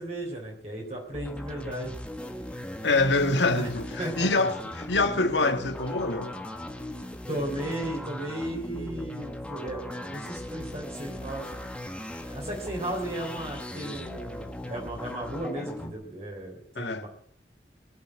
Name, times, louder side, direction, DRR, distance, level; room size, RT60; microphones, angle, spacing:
voice 1, 0.0-1.9 3.5-3.7 4.0-4.5 7.3-11.6 12.2-17.1, right 1 dB, 35° right, 3.5 m, -35 dB
sound 1, 1.1-15.9, left 1 dB, 5° left, 1.4 m, -38 dB
voice 2, 2.8-6.4 16.8-17.0, left 3 dB, 90° left, 1.8 m, -25 dB
20.0 x 7.5 x 9.1 m
head